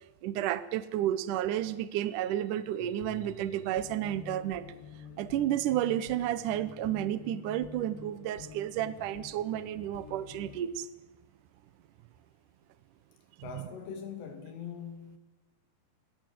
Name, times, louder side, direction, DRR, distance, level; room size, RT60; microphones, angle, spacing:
voice 1, 0.2-4.7 5.2-10.9 13.5-13.6, right 12 dB, 75° right, 1.9 m, -31 dB
sound 1, 2.8-10.7, left 7 dB, 60° left, 1.6 m, -48 dB
voice 2, 13.4-15.2, left 7 dB, 85° left, 4.4 m, -42 dB
27.5 x 18.5 x 7.6 m
omnidirectional pair, 4.8 m